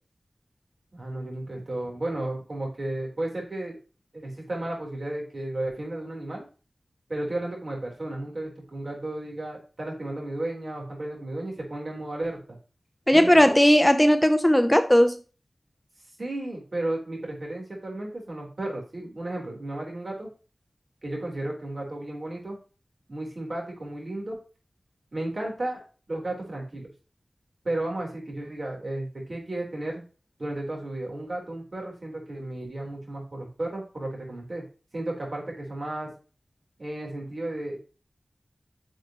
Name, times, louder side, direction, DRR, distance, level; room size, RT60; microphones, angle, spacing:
voice 1, 0.9-3.8 4.1-6.5 7.1-12.6 13.1-13.5 16.2-20.3 21.0-22.6 23.1-24.4 25.1-26.9 27.6-30.0 30.4-34.6 34.9-36.1 36.8-37.8, right 1 dB, 55° right, -1 dB, 4.0 m, -33 dB
voice 2, 13.1-15.2, equal, 10° left, 9 dB, 0.6 m, -17 dB
10.0 x 6.4 x 3.1 m, 0.35 s
wide cardioid pair, 85°, 0 cm